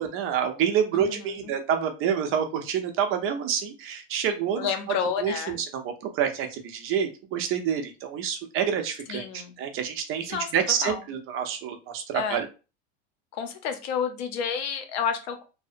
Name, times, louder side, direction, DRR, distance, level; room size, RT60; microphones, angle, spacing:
voice 1, 0.0-4.7 5.2-12.5, right 8 dB, 45° right, 6 dB, 0.6 m, -28 dB
voice 2, 0.9-1.5 4.6-5.6 9.1-9.5 10.3-10.5 10.8-11.0 12.1-12.4 13.3-15.4, left 7 dB, 80° left, 7 dB, 0.7 m, -30 dB
2.7 x 2.0 x 2.5 m, 0.31 s
supercardioid pair, 130°, 31 cm